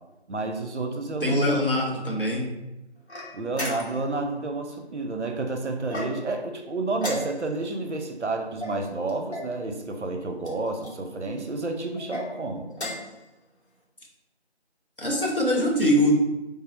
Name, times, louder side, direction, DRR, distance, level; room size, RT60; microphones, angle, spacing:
voice 1, 0.3-1.4 3.3-12.7, right 3 dB, 80° right, 4 dB, 0.6 m, -30 dB
voice 2, 1.2-2.5 15.0-16.1, equal, 50° left, -3 dB, 0.9 m, -22 dB
sound 1, 3.1-4.2 5.8-6.4 7.0-7.7 8.6-9.5 10.4-11.0 11.9-12.3 12.7-13.2, left 1 dB, 70° left, 1.2 m, -35 dB
3.7 x 2.1 x 4.0 m, 1.0 s
figure-of-eight pair, 175°, 34 cm